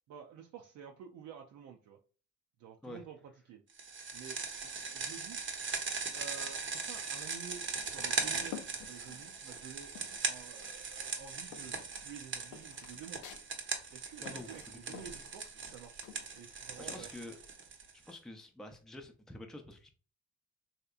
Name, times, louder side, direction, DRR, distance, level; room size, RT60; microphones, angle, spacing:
voice 1, 0.1-2.0 2.6-3.2 3.4-3.6 4.1-5.4 6.1-9.9 10.2-13.2 13.9-16.1 16.3-17.1, right 8 dB, 70° right, 1 dB, 0.5 m, -50 dB
sound 1, 3.8-18.1, right 5 dB, 40° right, 0.7 m, -39 dB
sound 2, 7.8-9.6 9.9-10.8 11.1-17.1, left 8 dB, 80° left, 0.5 m, -51 dB
voice 2, 14.2-15.0 16.8-17.4 17.9-19.9, left 1 dB, ahead, 4 dB, 0.5 m, -48 dB
3.3 x 2.8 x 2.4 m, 0.38 s
cardioid pair, 90°, 30 cm